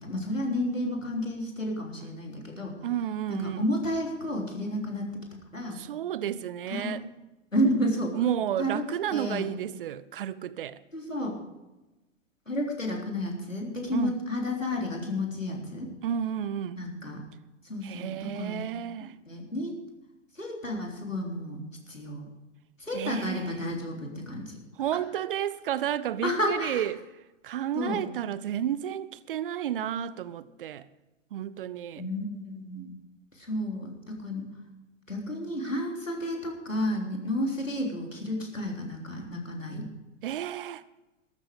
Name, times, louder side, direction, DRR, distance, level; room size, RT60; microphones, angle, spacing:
voice 1, 0.0-2.8 3.3-5.2 5.5-5.8 6.7-7.0 7.5-8.2 8.6-8.8 9.1-9.5 10.9-11.4 12.5-15.9 16.8-17.2 17.7-18.6 19.3-19.8 20.4-21.6 21.9-22.3 22.9-24.4 26.2-26.8 27.8-28.0 32.0-32.9 33.5-34.5 35.1-39.9, left 1 dB, 90° left, 3.6 m, -31 dB
voice 2, 2.8-3.7 5.7-7.1 8.1-10.8 13.9-14.2 16.0-16.8 17.8-19.1 22.9-23.6 24.8-27.1 27.4-30.9 31.3-32.0 40.2-40.8, right 10 dB, 45° right, 0.7 m, -32 dB
13.5 x 13.0 x 5.1 m
figure-of-eight pair, 110°, 38 cm